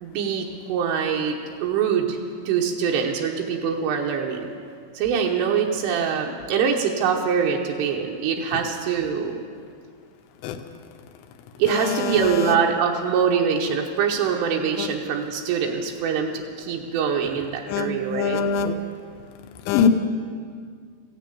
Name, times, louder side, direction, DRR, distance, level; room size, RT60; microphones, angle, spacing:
voice 1, 0.0-2.2 2.5-4.5 5.0-9.4 11.6-18.4, right 7 dB, 85° right, 0 dB, 3.4 m, -24 dB
voice 2, 11.7-12.6 14.8-14.9 17.7-18.7 19.7-19.9, left 7 dB, 80° left, 6 dB, 2.7 m, -23 dB
15.5 x 10.0 x 8.4 m, 2.1 s
omnidirectional pair, 5.5 m